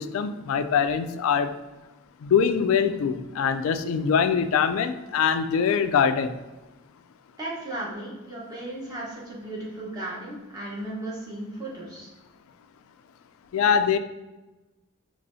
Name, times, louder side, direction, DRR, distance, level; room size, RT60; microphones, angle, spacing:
voice 1, 0.0-1.5 2.2-6.3 13.5-14.0, left 7 dB, 75° left, 12 dB, 0.3 m, -23 dB
voice 2, 7.4-12.1, right 1 dB, 20° right, -6 dB, 1.1 m, -35 dB
5.5 x 3.1 x 2.6 m, 1.1 s
head